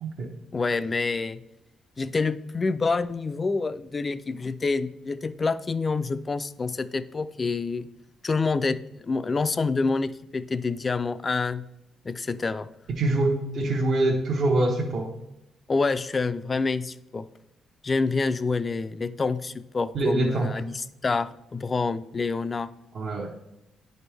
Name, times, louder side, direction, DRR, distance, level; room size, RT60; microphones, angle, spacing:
voice 1, 0.5-1.4 2.0-7.9 8.2-11.7 12.0-12.7 15.7-17.3 17.8-22.7, left 4 dB, 30° left, 13 dB, 0.4 m, -27 dB
voice 2, 13.0-15.1 19.9-20.5 22.9-23.3, right 2 dB, 60° right, -1 dB, 1.0 m, -24 dB
10.5 x 4.3 x 3.4 m, 0.89 s
cardioid pair, 90°, 0 cm